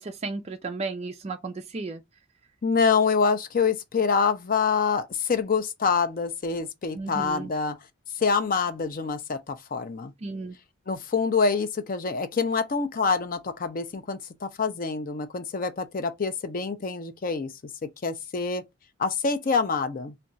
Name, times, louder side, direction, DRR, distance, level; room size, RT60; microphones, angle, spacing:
voice 1, 0.0-2.0 6.9-7.5 10.2-10.6, right 3 dB, 30° right, 0.3 m, -34 dB
voice 2, 2.6-7.8 8.2-10.1 10.9-17.5 18.0-18.6 19.0-20.1, left 5 dB, 40° left, 0.4 m, -26 dB
2.4 x 2.2 x 3.8 m
head